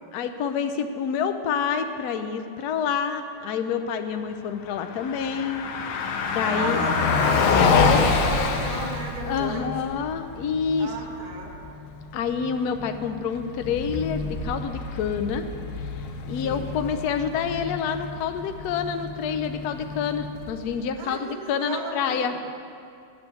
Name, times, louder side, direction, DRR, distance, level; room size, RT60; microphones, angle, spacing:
voice 1, 0.1-5.7 6.3-6.8 7.6-8.0 9.3-10.9 12.1-15.5 16.3-22.3, left 7 dB, 70° left, 8 dB, 0.9 m, -27 dB
Car passing by, 4.7-20.8, left 4 dB, 85° left, 1.6 m, -27 dB
voice 2, 6.4-9.7 10.8-11.5 16.4-16.8 21.0-22.4, right 3 dB, 30° right, -2 dB, 1.2 m, -33 dB
9.0 x 7.0 x 8.1 m, 2.4 s
omnidirectional pair, 2.3 m